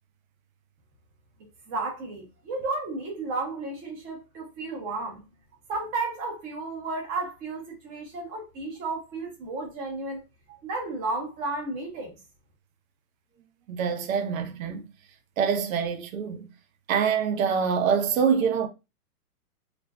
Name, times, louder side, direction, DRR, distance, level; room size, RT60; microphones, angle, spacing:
voice 1, 1.7-5.2 5.7-10.2 10.6-12.2, right 3 dB, 20° right, 0.6 m, -33 dB
voice 2, 13.7-14.8 15.4-16.5 16.9-18.7, right 7 dB, 60° right, 0.7 m, -25 dB
2.4 x 2.2 x 2.3 m
hypercardioid pair, 145°, 47 cm